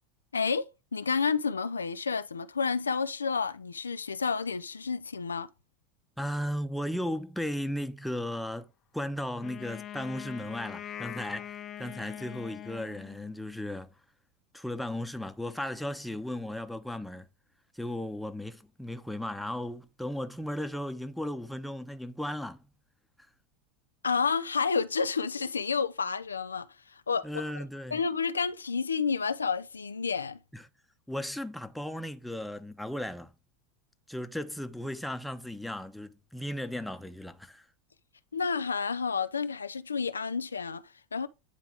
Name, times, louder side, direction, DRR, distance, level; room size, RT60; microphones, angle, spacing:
voice 1, 0.3-0.7 0.9-5.5 24.0-26.7 27.1-27.4 27.9-30.4 38.3-40.8 41.1-41.3, left 5 dB, 90° left, 0.4 m, -30 dB
voice 2, 6.2-13.9 14.5-17.3 17.7-22.6 27.2-28.0 30.5-30.7 31.1-33.3 34.1-37.7, left 1 dB, 5° left, 0.9 m, -36 dB
Wind instrument woodwind instrument, 9.4-13.6, left 10 dB, 40° left, 0.6 m, -42 dB
9.5 x 3.5 x 4.8 m
hypercardioid pair, 85°, 0 cm